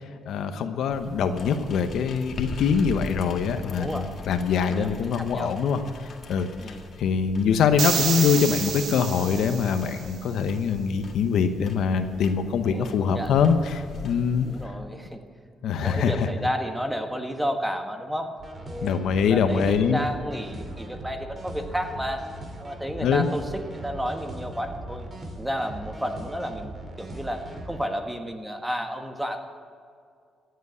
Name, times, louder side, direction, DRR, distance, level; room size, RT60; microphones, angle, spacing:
voice 1, 0.2-5.8 6.3-6.5 7.0-14.5 15.6-16.2 18.8-20.0 23.0-23.3, left 6 dB, 75° left, 8 dB, 1.0 m, -23 dB
sound 1, 0.9-14.7, left 4 dB, 55° left, 1.7 m, -41 dB
voice 2, 3.7-4.1 4.6-5.6 6.6-6.9 12.6-13.5 14.4-15.2 15.8-18.4 18.7-22.3 22.6-25.1 25.4-29.4, equal, 5° right, 5 dB, 1.5 m, -32 dB
sound 2, 7.8-10.1, right 7 dB, 65° right, 1.1 m, -29 dB
sound 3, 18.4-27.8, right 1 dB, 35° right, 2.5 m, -39 dB
14.5 x 8.1 x 8.1 m, 2.2 s
cardioid pair, 90°, 0 cm